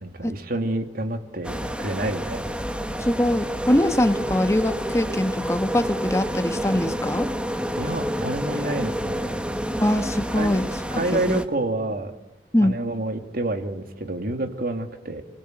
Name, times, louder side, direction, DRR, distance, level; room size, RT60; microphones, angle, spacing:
voice 1, 0.0-2.5 7.8-9.4 10.4-10.5 10.9-12.1 12.6-15.2, right 2 dB, 55° right, 7 dB, 2.7 m, -28 dB
sound 1, 1.4-11.5, equal, 5° right, 1.8 m, -29 dB
voice 2, 3.0-7.3 9.8-10.7 11.3-11.4 12.5-12.7, left 1 dB, 15° left, 8 dB, 1.6 m, -22 dB
29.5 x 20.0 x 8.1 m, 0.87 s
head